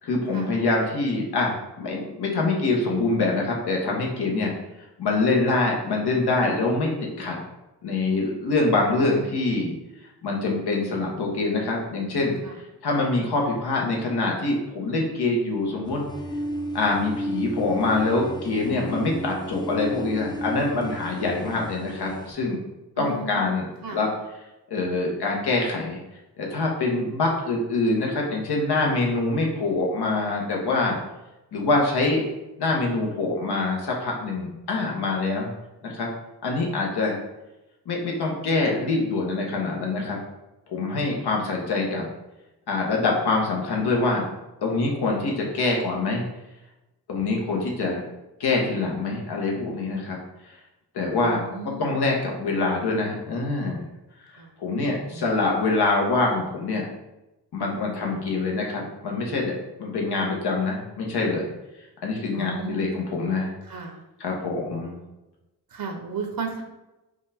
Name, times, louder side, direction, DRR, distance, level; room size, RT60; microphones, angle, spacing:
voice 1, 0.0-4.5 5.0-6.9 7.2-7.4 7.8-9.7 10.2-12.3 12.8-16.0 16.7-22.6 23.0-24.1 24.7-26.0 26.4-31.0 31.5-32.2 32.6-35.5 35.8-36.1 36.4-37.2 37.8-40.2 40.7-42.1 42.7-44.2 44.6-46.2 47.1-48.0 48.4-50.2 50.9-51.4 51.8-53.8 54.6-56.8 57.5-61.5 62.0-63.5 64.2-65.0, left 3 dB, 75° left, -1 dB, 1.2 m, -25 dB
sound 1, 15.8-22.3, right 1 dB, 10° left, 0.5 m, -33 dB
voice 2, 23.0-23.5 23.8-24.0 51.2-52.0 54.4-54.5 55.1-55.4 62.3-62.9 63.6-64.0 65.7-66.6, right 4 dB, 60° right, 3 dB, 0.8 m, -34 dB
5.2 x 2.5 x 3.4 m, 0.99 s
cardioid pair, 75°, 40 cm